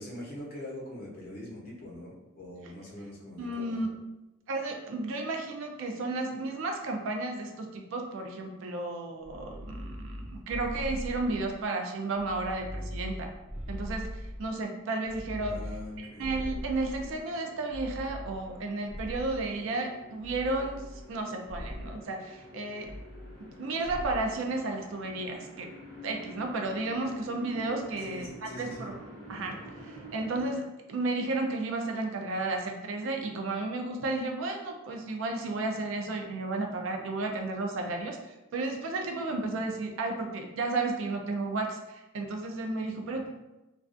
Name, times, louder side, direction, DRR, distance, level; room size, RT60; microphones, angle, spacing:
voice 1, 0.0-3.8 15.4-16.3 28.0-28.9, left 1 dB, 45° left, -4 dB, 0.7 m, -43 dB
voice 2, 3.4-4.0 4.5-13.3 13.7-15.6 16.0-22.9 23.4-25.7 26.0-28.9 29.3-43.3, right 2 dB, 65° right, 3 dB, 0.4 m, -33 dB
sound 1, 9.2-11.7 12.1-14.6 15.0-17.2 17.7-19.6 20.2-21.2 21.5-22.0 22.8-23.6 23.8-24.3, equal, 35° right, 0.8 m, -40 dB
sound 2, 15.5-30.5, equal, 5° left, 1.2 m, -49 dB
2.3 x 2.3 x 2.4 m, 1.0 s
head